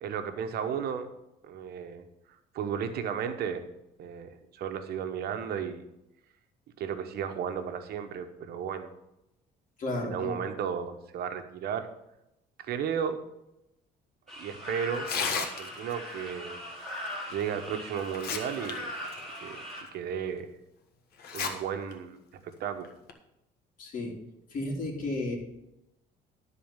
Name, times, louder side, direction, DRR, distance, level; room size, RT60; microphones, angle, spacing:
voice 1, 0.0-1.1 1.4-2.1 2.5-3.7 4.0-5.8 6.8-8.9 10.0-11.9 12.6-13.2 14.4-16.6 17.3-18.9 19.4-19.6 19.9-20.5 21.3-22.9, right 7 dB, 65° right, 7 dB, 1.1 m, -34 dB
voice 2, 9.8-10.3 23.8-24.2 24.5-25.4, left 2 dB, 50° left, -2 dB, 2.8 m, -33 dB
sound 1, 14.3-19.8, left 1 dB, ahead, 3.6 m, -40 dB
Tearing, 14.9-15.9 17.4-17.5 18.0-18.7 19.1-19.2 19.9-20.0 21.2-21.5 21.9-22.0 22.8-23.1, left 6 dB, 65° left, 1.4 m, -32 dB
12.0 x 4.3 x 7.2 m, 0.88 s
cardioid pair, 110°, 17 cm